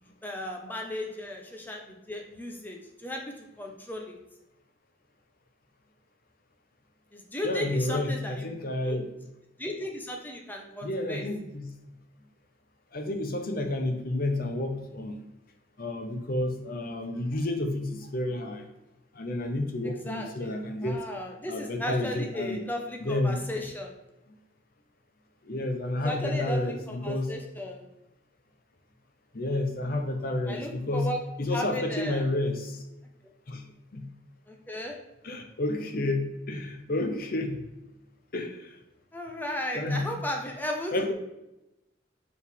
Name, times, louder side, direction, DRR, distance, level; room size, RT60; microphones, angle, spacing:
voice 1, 0.0-4.2 7.1-8.4 8.8-9.0 9.6-11.3 20.0-20.6 20.8-23.9 26.0-27.8 30.5-31.2 31.5-32.2 34.5-35.0 39.1-41.1, left 1 dB, 10° left, 1 dB, 0.7 m, -35 dB
voice 2, 7.4-9.1 10.8-11.7 12.9-15.2 15.8-18.7 19.1-21.0 21.5-22.6 23.0-23.4 25.4-27.3 29.3-31.1 31.4-32.8 33.5-33.6 33.9-34.1 35.2-37.6 38.3-38.8 39.7-40.1 40.9-41.1, left 2 dB, 50° left, 5 dB, 0.7 m, -30 dB
6.4 x 4.6 x 3.5 m, 0.93 s
head